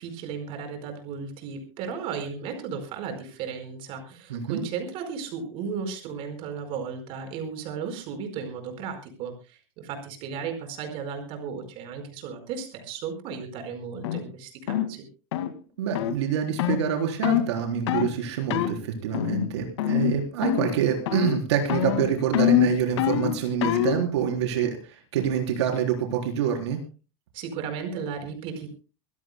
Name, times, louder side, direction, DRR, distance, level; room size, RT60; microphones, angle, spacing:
voice 1, 0.0-15.1 27.3-28.7, right 6 dB, 40° right, 6 dB, 4.7 m, -35 dB
voice 2, 4.3-4.6 15.8-26.8, right 8 dB, 85° right, 2 dB, 4.1 m, -26 dB
sound 1, 14.0-14.2 14.7-14.9 15.3-15.5 15.9-16.2 16.6-16.8 17.2-17.5 17.9-18.1 18.5-18.7 19.1-19.5 19.8-20.1 20.4-20.8 21.1-21.4 21.7-24.0, left 11 dB, 80° left, 2.1 m, -24 dB
24.5 x 16.0 x 2.2 m, 0.32 s
supercardioid pair, 165°, 14 cm